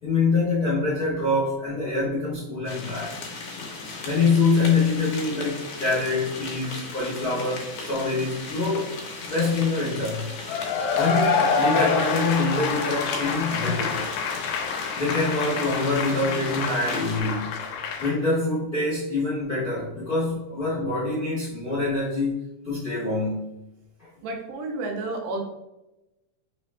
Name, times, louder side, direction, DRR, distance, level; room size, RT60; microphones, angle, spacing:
voice 1, 0.0-3.2 4.0-8.9 9.3-10.3 10.9-14.0 14.9-17.5 18.0-22.3 22.6-23.4 24.0-24.1, left 3 dB, 45° left, -9 dB, 1.2 m, -25 dB
sound 1, 2.7-17.2, left 3 dB, 70° left, 2.0 m, -36 dB
Cheering / Applause / Crowd, 10.5-18.1, left 5 dB, 90° left, 2.4 m, -27 dB
voice 2, 24.2-25.4, right 2 dB, 85° right, 2 dB, 2.3 m, -31 dB
5.2 x 3.4 x 2.2 m, 0.93 s
omnidirectional pair, 4.0 m